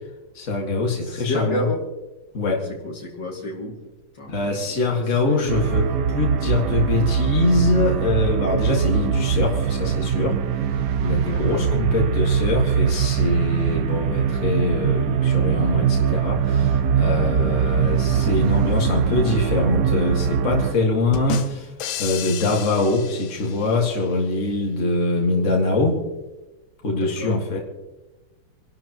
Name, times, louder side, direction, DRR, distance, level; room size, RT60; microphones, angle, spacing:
voice 1, 0.3-1.6 2.3-2.6 4.3-10.4 11.0-21.7 22.0-26.0 26.8-27.6, left 2 dB, 35° left, -1 dB, 2.3 m, -23 dB
voice 2, 1.0-1.8 2.8-3.8 4.1-4.8 5.2-5.6 11.3-11.7 26.9-27.6, left 1 dB, 55° left, 0 dB, 2.9 m, -31 dB
sound 1, 5.5-20.7, right 7 dB, 75° right, 0.8 m, -22 dB
sound 2, 21.1-24.0, left 10 dB, 75° left, 1.6 m, -32 dB
26.5 x 12.0 x 3.0 m, 1.1 s
omnidirectional pair, 2.2 m